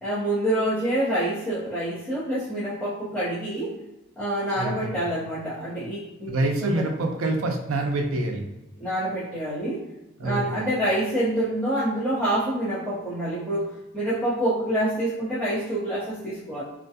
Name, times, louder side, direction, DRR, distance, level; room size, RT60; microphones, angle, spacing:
voice 1, 0.0-3.8 4.2-6.9 8.8-9.8 10.2-13.7 13.9-16.6, right 1 dB, 5° left, -13 dB, 0.7 m, -27 dB
voice 2, 4.6-5.0 6.3-8.4 10.2-10.7, right 2 dB, 75° right, 3 dB, 0.4 m, -26 dB
2.5 x 2.2 x 2.7 m, 0.94 s
head